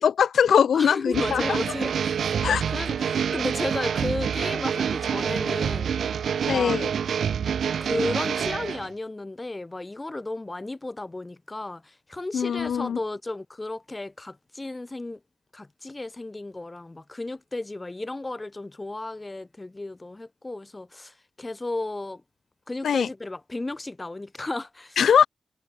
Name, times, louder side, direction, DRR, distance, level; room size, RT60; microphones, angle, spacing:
voice 1, 0.0-1.6 2.4-2.6 6.5-6.9 12.3-13.0 22.8-23.1 25.0-25.3, left 8 dB, 80° left, 0.3 m, -21 dB
voice 2, 0.7-2.3 2.7-6.8 7.8-15.2 15.5-22.2 22.7-25.1, left 2 dB, 20° left, 4.4 m, -34 dB
sound 1, 1.1-8.9, right 7 dB, 75° right, 0.8 m, -27 dB
cardioid pair, 95°, 0 cm